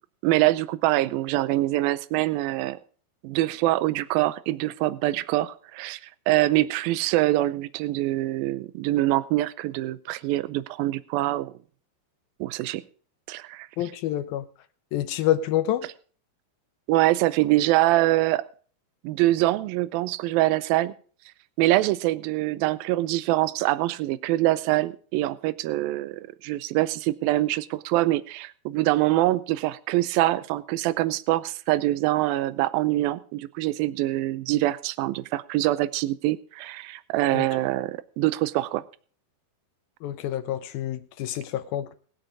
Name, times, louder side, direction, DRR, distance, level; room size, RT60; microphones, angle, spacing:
voice 1, 0.2-2.8 3.2-11.5 12.4-12.8 13.3-13.7 16.9-18.4 19.0-20.9 21.6-38.8, right 16 dB, 80° right, 2.1 m, -24 dB
voice 2, 13.8-14.5 14.9-15.9 37.3-37.5 40.0-41.9, left 12 dB, 75° left, 2.3 m, -27 dB
21.0 x 8.0 x 3.7 m
omnidirectional pair, 4.9 m